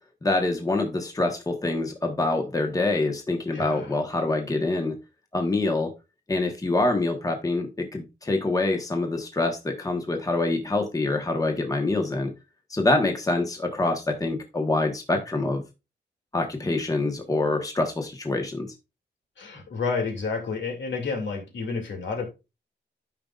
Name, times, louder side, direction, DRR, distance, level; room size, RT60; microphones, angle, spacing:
voice 1, 0.2-4.9 5.3-5.9 6.3-12.3 12.7-15.6 16.3-18.7, left 2 dB, 20° left, 4 dB, 1.2 m, -25 dB
voice 2, 3.5-3.9 19.4-22.3, left 4 dB, 80° left, 3 dB, 2.5 m, -30 dB
13.0 x 5.3 x 2.4 m, 0.26 s
wide cardioid pair, 145°, 19 cm